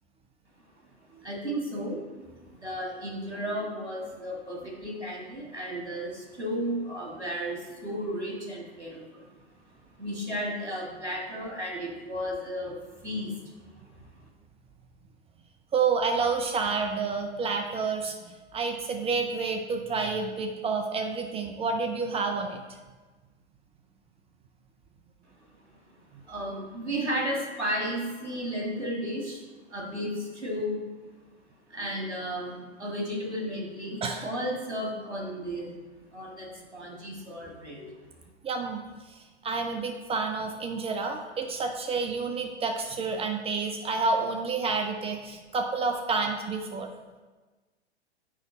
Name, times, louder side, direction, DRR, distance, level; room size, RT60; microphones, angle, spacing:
voice 1, 1.2-2.0 2.5-9.3 10.0-12.8 13.0-13.4 13.7-14.0 26.3-29.4 29.7-30.8 31.7-35.7 36.1-38.0, equal, 90° right, -1 dB, 1.9 m, -33 dB
voice 2, 15.7-22.6 34.0-34.3 38.4-38.8 39.1-46.9, right 4 dB, 15° right, 4 dB, 0.5 m, -29 dB
7.4 x 5.2 x 4.0 m, 1.3 s
figure-of-eight pair, 100°, 34 cm